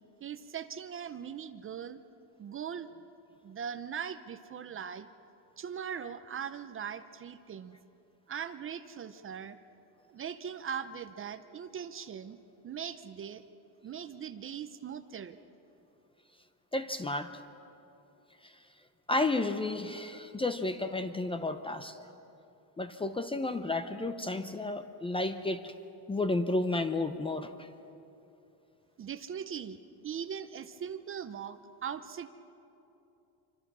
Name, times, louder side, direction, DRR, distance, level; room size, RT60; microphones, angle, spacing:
voice 1, 0.2-2.0 2.4-2.9 3.4-5.1 5.6-7.8 8.3-9.6 10.1-12.4 12.6-13.4 13.8-15.4 29.0-29.8 30.0-32.3, right 8 dB, 30° right, 11 dB, 0.6 m, -40 dB
voice 2, 16.7-17.4 18.4-18.5 19.1-22.0 22.8-25.7 26.1-27.7, left 2 dB, 10° left, 9 dB, 0.6 m, -32 dB
27.0 x 25.0 x 6.2 m, 2.8 s
cardioid pair, 150°, 47 cm